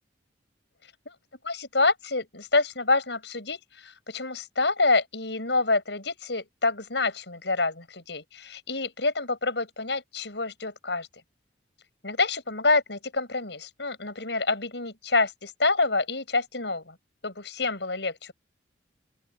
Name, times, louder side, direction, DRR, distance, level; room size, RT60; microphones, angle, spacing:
voice 1, 1.4-11.1 12.0-17.0 17.2-18.3, left 3 dB, 70° left, 8.0 m, -27 dB
open air
head